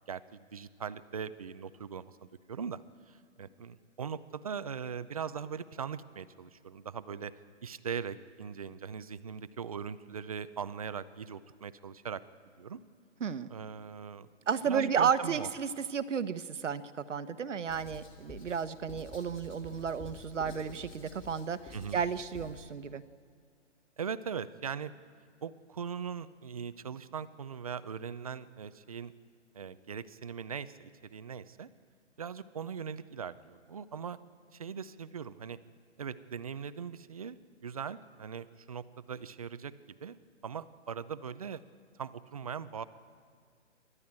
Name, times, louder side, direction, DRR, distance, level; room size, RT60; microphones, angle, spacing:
voice 1, 0.1-2.8 3.1-7.3 7.6-12.2 12.6-12.8 13.5-14.3 14.7-15.5 21.7-22.0 24.0-24.9 25.4-29.1 29.5-31.7 32.2-34.2 34.5-35.6 36.0-39.7 40.0-40.2 40.4-41.6 42.0-42.8, right 7 dB, 30° right, 14 dB, 0.5 m, -40 dB
voice 2, 14.5-23.0, right 7 dB, 80° right, 12 dB, 1.2 m, -33 dB
Writing, 17.7-22.7, left 2 dB, 15° left, 2.6 m, -49 dB
28.0 x 12.5 x 8.8 m, 2.1 s
hypercardioid pair, 165°, 36 cm